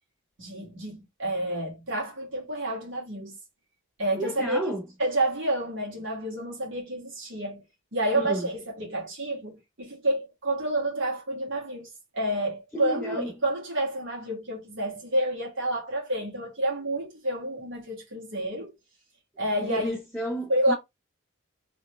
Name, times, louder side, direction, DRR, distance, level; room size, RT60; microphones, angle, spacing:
voice 1, 0.4-3.3 4.0-4.7 5.0-7.6 7.9-18.7 19.4-20.0 20.5-20.7, right 1 dB, 60° right, 1.7 m, -29 dB
voice 2, 4.2-4.8 8.1-8.5 12.7-13.3 19.6-20.7, equal, ahead, 0.7 m, -31 dB
3.1 x 2.8 x 3.2 m
head